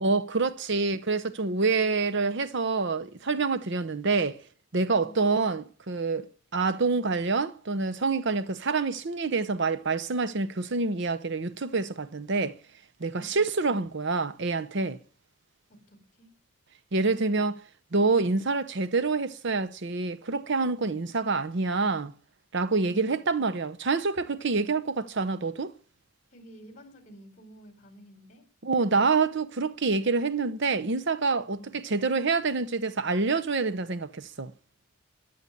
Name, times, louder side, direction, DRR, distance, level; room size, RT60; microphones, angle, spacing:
voice 1, 0.0-4.4 4.7-6.3 6.5-12.6 13.0-15.0 16.9-17.6 17.9-22.1 22.5-25.7 28.6-34.5, right 4 dB, 55° right, 0.8 m, -27 dB
voice 2, 1.7-2.0 5.0-5.3 13.2-13.5 15.7-16.3 22.9-23.1 26.3-28.5 31.5-31.8, right 1 dB, 40° left, 4.1 m, -51 dB
13.5 x 11.0 x 8.6 m
head